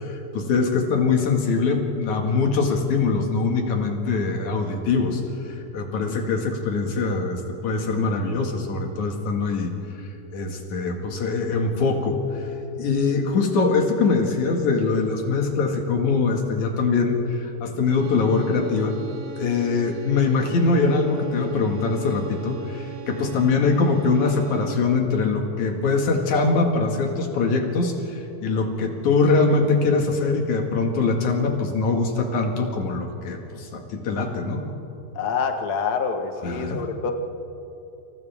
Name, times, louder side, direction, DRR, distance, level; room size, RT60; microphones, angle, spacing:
voice 1, 0.0-5.2 5.5-9.7 10.3-12.2 12.8-19.0 19.4-34.6 36.4-36.8, left 4 dB, 60° left, 2 dB, 3.1 m, -23 dB
sound 1, 17.9-25.0, right 6 dB, 75° right, 3.4 m, -40 dB
voice 2, 35.1-37.1, left 5 dB, 85° left, 4 dB, 0.8 m, -26 dB
29.5 x 27.0 x 3.6 m, 2.9 s
omnidirectional pair, 4.2 m